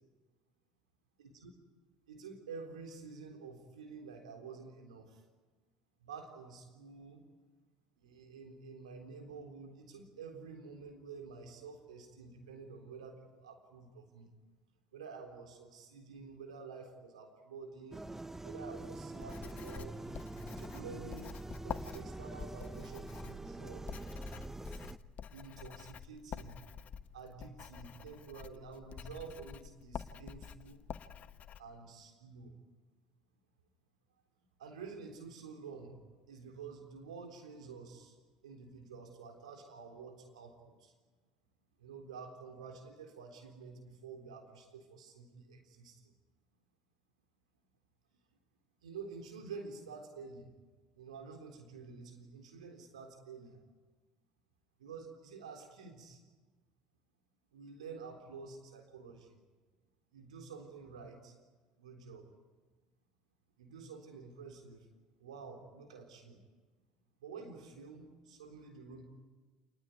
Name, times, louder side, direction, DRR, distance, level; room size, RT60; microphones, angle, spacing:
voice 1, 1.2-1.5 2.1-5.2 6.0-7.2 8.0-14.3 14.9-18.0 18.4-20.0 20.5-23.8 25.3-26.6 27.1-30.8 31.6-32.5 34.6-36.0 36.3-38.2 38.4-40.9 41.8-46.1 48.8-50.5 50.9-53.6 54.8-56.2 57.5-59.4 60.1-61.3 61.8-62.3 63.6-64.9 65.2-66.4 67.2-69.0, right 5 dB, 85° right, 4 dB, 3.7 m, -49 dB
sound 1, 17.9-25.0, right 2 dB, 10° right, 1.0 m, -45 dB
Writing, 19.2-31.6, left 7 dB, 45° left, 1.2 m, -48 dB
28.5 x 20.0 x 9.6 m, 1.3 s
hypercardioid pair, 65°, 3 cm